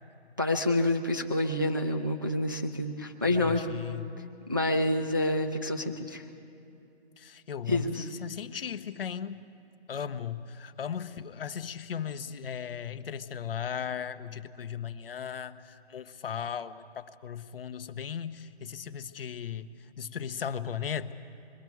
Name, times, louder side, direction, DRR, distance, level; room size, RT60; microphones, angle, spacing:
voice 1, 0.4-3.7 4.5-6.2 7.7-8.1, left 1 dB, 20° right, 3 dB, 0.4 m, -28 dB
voice 2, 3.4-4.1 7.2-9.4 9.9-21.1, left 8 dB, 60° left, 12 dB, 0.8 m, -37 dB
26.5 x 22.0 x 4.6 m, 2.6 s
hypercardioid pair, 170°, 32 cm